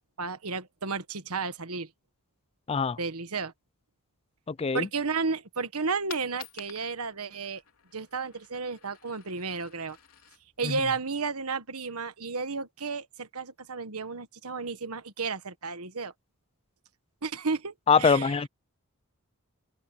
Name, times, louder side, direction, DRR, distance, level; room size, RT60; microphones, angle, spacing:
voice 1, 0.0-1.9 3.0-3.5 4.7-7.6 7.9-10.0 10.6-16.1 17.2-18.4, right 4 dB, 75° right, 1.5 m, -33 dB
voice 2, 2.7-3.0 4.5-4.9 10.6-10.8 17.9-18.5, left 5 dB, 25° left, 0.4 m, -23 dB
Coin (dropping), 5.8-11.8, left 9 dB, 70° left, 3.8 m, -51 dB
head